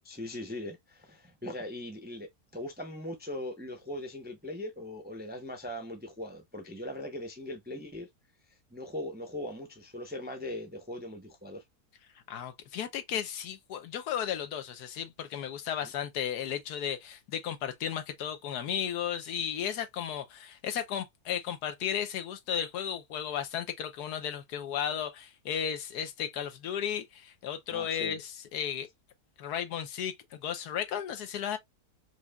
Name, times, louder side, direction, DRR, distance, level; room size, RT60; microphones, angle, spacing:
voice 1, 0.1-8.1 8.7-11.6 27.7-28.2, left 1 dB, 10° right, 0.5 m, -40 dB
voice 2, 12.3-28.9 29.4-31.6, left 9 dB, 85° left, 1.3 m, -34 dB
4.8 x 2.7 x 2.3 m
omnidirectional pair, 1.7 m